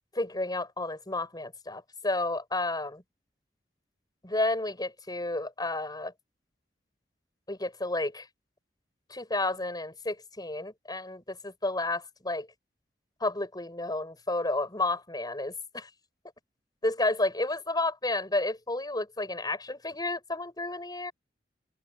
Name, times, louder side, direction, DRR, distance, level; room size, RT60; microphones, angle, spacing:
voice 1, 0.1-3.0 4.2-6.1 7.5-8.3 9.1-12.5 13.2-15.9 16.8-21.1, left 2 dB, 25° left, 7.6 m, -31 dB
open air
head